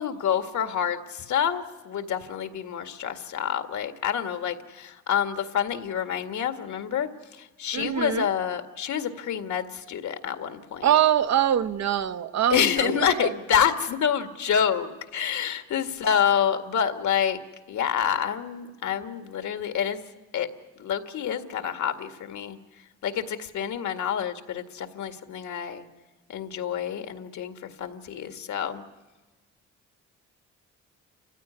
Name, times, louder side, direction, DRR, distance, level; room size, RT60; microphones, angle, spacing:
voice 1, 0.0-10.9 12.5-17.4 17.7-20.0 20.3-20.5 20.8-22.6 23.0-25.9 26.3-28.8, left 8 dB, 70° left, 7 dB, 2.1 m, -27 dB
voice 2, 7.7-8.3 10.8-13.3, right 10 dB, 65° right, 10 dB, 1.3 m, -24 dB
29.5 x 15.5 x 9.8 m, 1.2 s
cardioid pair, 90°, 30 cm